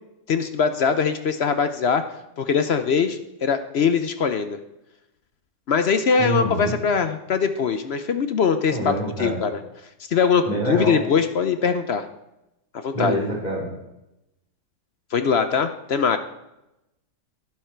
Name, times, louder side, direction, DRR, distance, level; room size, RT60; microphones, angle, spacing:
voice 1, 0.3-2.0 2.4-4.6 5.7-8.8 9.2-9.5 10.1-12.0 12.8-13.1 15.1-16.2, left 6 dB, 60° left, 9 dB, 0.6 m, -22 dB
voice 2, 6.2-6.8 8.7-9.3 10.5-11.0 12.9-13.7, right 1 dB, 25° left, -3 dB, 4.2 m, -25 dB
11.5 x 11.0 x 4.5 m, 0.90 s
omnidirectional pair, 1.9 m